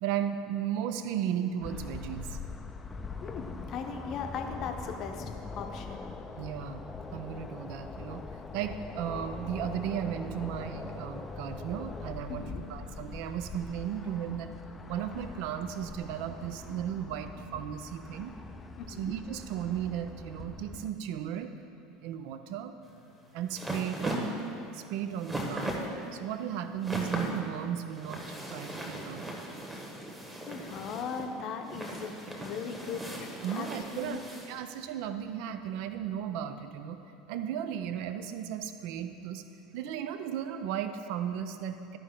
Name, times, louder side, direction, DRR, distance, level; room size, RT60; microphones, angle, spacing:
voice 1, 0.0-2.4 6.4-6.8 7.1-8.3 8.5-14.5 14.9-18.3 18.9-21.6 22.0-22.7 23.3-24.3 24.7-25.8 26.1-29.3 33.4-37.0 37.3-39.4 39.7-42.0, right 9 dB, 55° right, 9 dB, 0.4 m, -35 dB
sound 1, 1.6-20.9, left 3 dB, 15° left, 0.4 m, -42 dB
voice 2, 3.2-6.1 12.3-12.6 18.8-19.1 30.5-34.2, left 6 dB, 45° left, 4 dB, 0.8 m, -39 dB
sound 2, 22.9-34.6, right 1 dB, 15° right, 1.3 m, -38 dB
13.0 x 5.2 x 3.7 m, 2.9 s
figure-of-eight pair, 70°, 0 cm